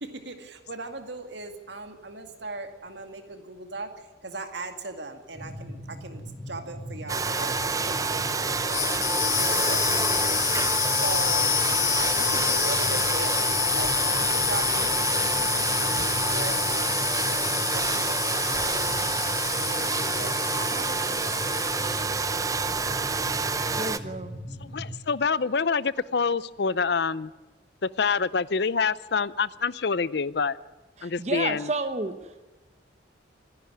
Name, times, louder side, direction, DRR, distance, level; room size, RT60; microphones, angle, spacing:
voice 1, 0.0-9.0 9.4-10.4 11.0-11.5 11.9-18.9 19.4-21.7 22.0-22.3 22.5-23.1, right 3 dB, 65° right, 7 dB, 2.2 m, -39 dB
sound 1, 5.3-24.9, equal, ahead, 2.4 m, -39 dB
Domestic sounds home sounds, 7.1-24.0, right 4 dB, 15° right, 0.6 m, -28 dB
sound 2, 8.6-22.1, left 12 dB, 75° left, 1.6 m, -28 dB
voice 2, 23.7-24.4 31.0-32.5, right 2 dB, 35° right, 9 dB, 1.0 m, -31 dB
voice 3, 24.6-27.3 27.8-30.6 31.0-31.6, left 5 dB, 60° left, 19 dB, 0.5 m, -26 dB
25.0 x 10.5 x 9.5 m, 1.2 s
head